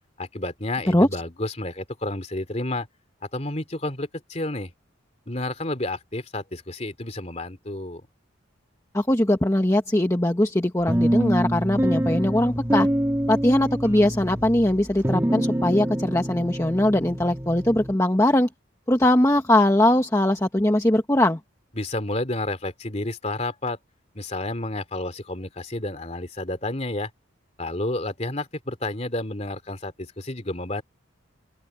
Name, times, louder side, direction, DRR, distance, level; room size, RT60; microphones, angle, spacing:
voice 1, 0.2-2.9 3.3-4.7 5.3-8.0 21.8-23.8 24.1-27.1 27.6-30.8, left 2 dB, 35° left, 2.8 m, -30 dB
voice 2, 8.9-12.9 13.3-18.5 18.9-21.4, left 1 dB, 15° left, 1.1 m, -21 dB
sound 1, 10.9-17.9, equal, 10° right, 1.7 m, -25 dB
open air
head